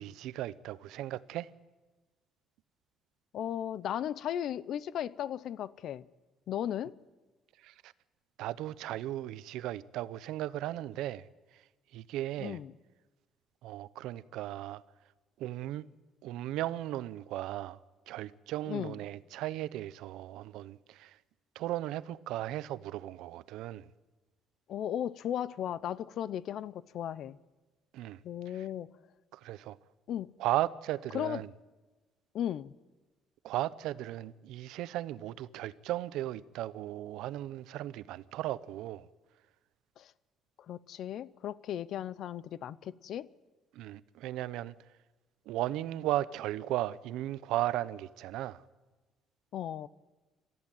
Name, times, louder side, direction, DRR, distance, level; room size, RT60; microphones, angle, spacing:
voice 1, 0.0-1.5 7.6-7.9 8.4-11.3 11.9-12.6 13.6-14.8 15.4-15.9 16.2-17.8 18.1-21.2 21.6-23.9 27.9-28.2 28.5-28.6 29.3-29.8 30.4-31.5 33.4-39.1 43.7-44.7 45.5-48.6, right 14 dB, 85° right, 0.7 m, -36 dB
voice 2, 3.3-6.1 6.5-6.9 12.4-12.7 18.7-19.0 24.7-27.4 28.2-28.9 30.1-30.3 31.1-31.4 32.3-32.7 40.0-40.1 40.7-43.3 49.5-49.9, left 10 dB, 55° left, 0.6 m, -36 dB
27.5 x 14.0 x 9.1 m
cardioid pair, 150°, 0 cm